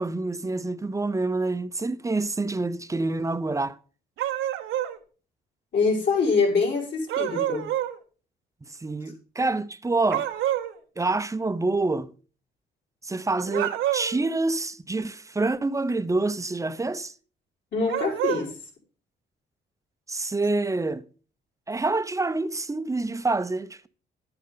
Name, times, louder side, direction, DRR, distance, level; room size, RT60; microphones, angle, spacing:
voice 1, 0.0-3.8 8.8-10.3 11.0-12.1 13.0-17.1 20.1-21.0 21.7-23.9, right 3 dB, 15° right, 0.7 m, -27 dB
sound 1, 4.2-5.0 7.1-8.0 10.1-10.7 13.5-14.2 17.9-18.5, right 12 dB, 85° right, 1.1 m, -27 dB
voice 2, 5.7-7.7 17.7-18.5, left 4 dB, 60° left, 5.0 m, -24 dB
11.5 x 9.5 x 3.9 m
cardioid pair, 90°, 20 cm